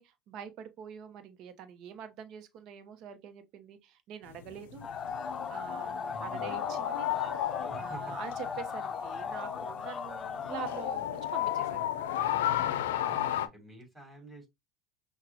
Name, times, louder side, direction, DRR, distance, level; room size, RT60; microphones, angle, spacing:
voice 1, 0.0-4.9 5.5-7.2 7.8-12.1, right 9 dB, 55° right, 1.0 m, -45 dB
sound 1, 4.3-13.5, left 12 dB, 80° left, 0.5 m, -34 dB
sound 2, 4.8-11.0, left 6 dB, 30° left, 0.6 m, -37 dB
voice 2, 6.1-6.6 7.7-8.0 13.0-14.5, right 2 dB, 10° right, 3.3 m, -48 dB
5.9 x 2.4 x 2.8 m
hypercardioid pair, 85°, 0 cm